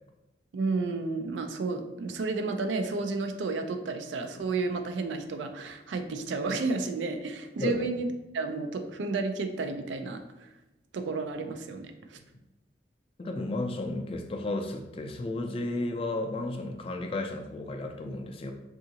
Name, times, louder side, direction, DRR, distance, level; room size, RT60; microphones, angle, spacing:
voice 1, 0.5-8.1 8.3-10.5 10.9-12.2, right 3 dB, 85° right, 7 dB, 0.4 m, -32 dB
voice 2, 7.6-7.9 13.2-18.5, left 2 dB, 30° left, 4 dB, 0.3 m, -33 dB
3.7 x 2.4 x 2.7 m, 0.98 s
head